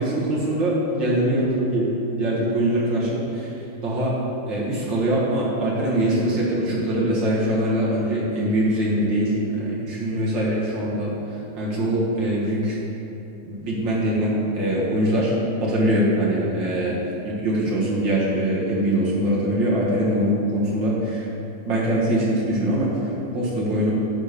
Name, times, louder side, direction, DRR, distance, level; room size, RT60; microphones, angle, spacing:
voice 1, 0.0-1.9 2.2-3.5 3.8-4.2 4.5-12.8 13.4-15.4 15.6-17.0 17.2-21.3 21.6-23.9, right 1 dB, 60° right, -6 dB, 2.1 m, -23 dB
9.9 x 3.7 x 6.6 m, 2.9 s
omnidirectional pair, 2.3 m